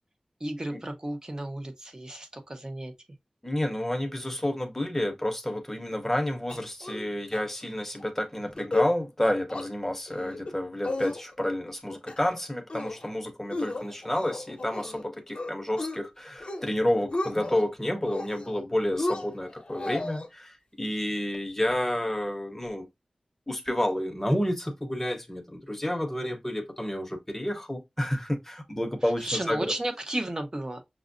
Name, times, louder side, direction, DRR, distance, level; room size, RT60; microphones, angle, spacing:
voice 1, 0.4-2.9 29.2-30.9, right 1 dB, 35° right, 0.8 m, -33 dB
voice 2, 3.4-22.9 23.5-29.7, left 1 dB, 15° left, 0.8 m, -30 dB
sound 1, 6.5-7.1 7.3-7.4 7.8-8.0 8.4-8.9 9.2-9.7 10.1-10.5 10.8-11.5 11.9-12.4 12.7-13.1 13.5-15.0 15.3-16.0 16.3-16.7 17.0-17.6 18.0-18.6 19.0-20.3, left 2 dB, 55° left, 0.7 m, -34 dB
6.0 x 2.0 x 2.5 m
wide cardioid pair, 70°, 2 cm